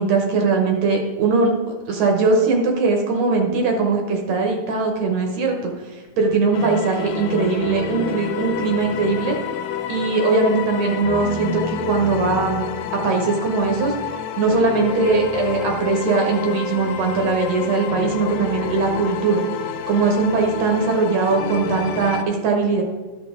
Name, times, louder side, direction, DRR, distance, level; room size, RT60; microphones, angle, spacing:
voice 1, 0.0-1.5 1.9-9.4 9.9-12.6 12.9-13.9 14.4-19.4 19.9-22.8, right 4 dB, 65° right, 2 dB, 1.9 m, -20 dB
sound 1, 6.5-22.2, left 8 dB, 85° left, 2.3 m, -29 dB
12.0 x 6.3 x 3.6 m, 1.3 s
omnidirectional pair, 3.7 m